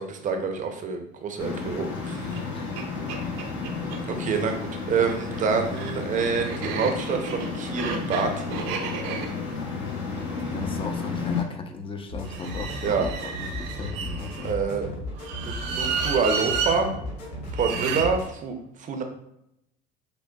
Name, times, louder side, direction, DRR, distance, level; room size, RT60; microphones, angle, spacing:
voice 1, 0.0-2.3 4.1-8.7 12.8-13.1 14.4-14.9 15.4-16.9 17.6-19.0, right 5 dB, 40° right, 5 dB, 0.6 m, -27 dB
sound 1, 1.4-11.4, left 4 dB, 60° left, 1.0 m, -32 dB
voice 2, 2.2-2.7 10.4-14.6 17.7-18.0, left 4 dB, 25° left, 6 dB, 0.5 m, -36 dB
sound 2, 2.3-2.4 2.8-2.9 3.1-4.0 4.9-11.1 12.3-14.5 15.2-16.8 17.5-18.1, right 5 dB, 80° right, 0.7 m, -32 dB
sound 3, 12.1-18.2, left 1 dB, 85° left, 1.4 m, -35 dB
6.2 x 2.1 x 2.3 m, 0.80 s
supercardioid pair, 105°, 21 cm